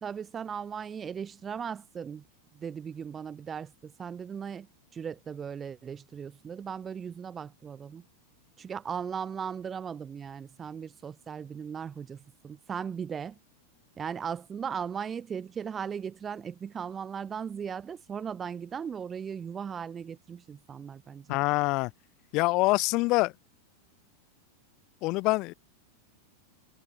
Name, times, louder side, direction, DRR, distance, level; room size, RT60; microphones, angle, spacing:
voice 1, 0.0-2.2 2.5-4.7 4.9-8.0 8.6-13.4 14.0-21.4, right 7 dB, 20° right, 2.8 m, -37 dB
voice 2, 21.3-21.9 22.3-23.3 25.0-25.5, left 23 dB, 40° left, 1.1 m, -25 dB
figure-of-eight pair, 90°, 0 cm